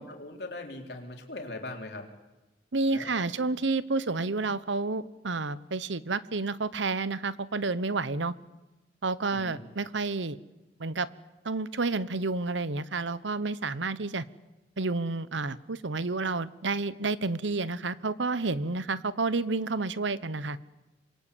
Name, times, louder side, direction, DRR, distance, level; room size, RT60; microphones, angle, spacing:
voice 1, 0.0-2.1 2.9-3.3 9.3-9.6, left 2 dB, 60° left, 2 dB, 4.1 m, -40 dB
voice 2, 2.7-8.3 9.0-10.4 10.8-11.1 11.4-14.2 14.8-20.6, right 3 dB, 90° right, 17 dB, 1.0 m, -30 dB
26.5 x 22.0 x 8.6 m, 1.1 s
head